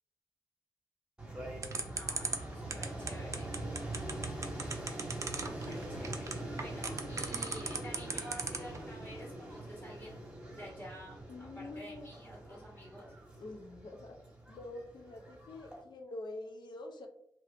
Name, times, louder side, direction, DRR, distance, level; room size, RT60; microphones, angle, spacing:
sound 1, 1.2-15.8, right 1 dB, 15° right, 1.1 m, -43 dB
sound 2, 1.6-8.8, right 4 dB, 45° right, 0.4 m, -36 dB
voice 1, 1.9-3.5 5.3-13.1, equal, 30° left, -5 dB, 1.1 m, -50 dB
voice 2, 5.6-6.0 11.3-12.1 13.4-14.2 14.5-17.1, left 2 dB, 80° left, 4 dB, 0.4 m, -46 dB
2.8 x 2.4 x 3.2 m, 0.74 s
wide cardioid pair, 115°, 7 cm